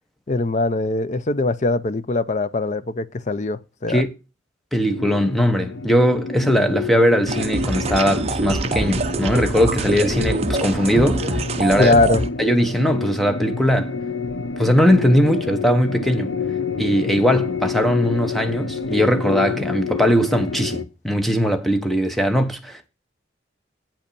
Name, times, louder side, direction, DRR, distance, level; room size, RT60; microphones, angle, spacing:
voice 1, 0.3-4.0 11.8-12.2, left 2 dB, 40° left, 0.6 m, -21 dB
voice 2, 4.7-11.9 12.4-14.0 14.6-16.3 16.8-22.9, equal, ahead, 1.0 m, -20 dB
sound 1, 4.9-20.8, left 5 dB, 85° left, 0.7 m, -28 dB
sound 2, 7.3-12.3, right 3 dB, 35° right, 0.7 m, -25 dB
8.9 x 5.3 x 6.9 m
head